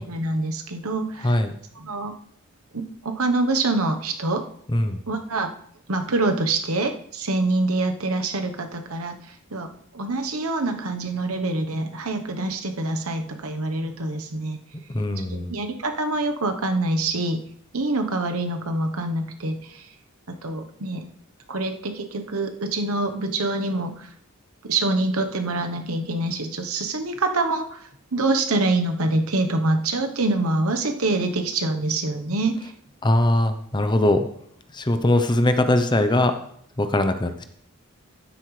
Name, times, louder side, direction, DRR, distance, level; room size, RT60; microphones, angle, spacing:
voice 1, 0.0-1.4 1.8-2.1 2.7-4.4 5.1-5.5 5.9-9.2 9.5-14.6 15.2-17.4 17.7-19.8 20.3-21.1 21.5-24.1 24.6-27.8 28.1-32.7, right 2 dB, 75° right, 6 dB, 1.1 m, -25 dB
voice 2, 4.7-5.0 14.9-15.5 33.0-34.3 34.7-36.4 36.8-37.4, left 1 dB, 20° left, 8 dB, 0.7 m, -21 dB
12.0 x 9.8 x 3.3 m, 0.66 s
head